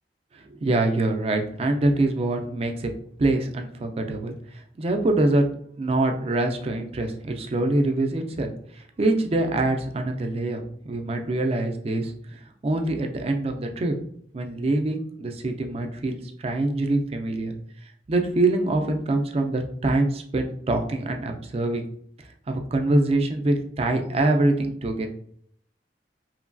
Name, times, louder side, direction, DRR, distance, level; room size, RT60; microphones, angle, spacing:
voice 1, 0.3-2.9 3.2-4.3 4.8-5.5 5.8-12.4 12.6-13.9 14.3-17.5 18.1-21.8 22.5-25.1, right 2 dB, 35° right, 4 dB, 0.4 m, -24 dB
3.1 x 2.2 x 2.4 m, 0.63 s
head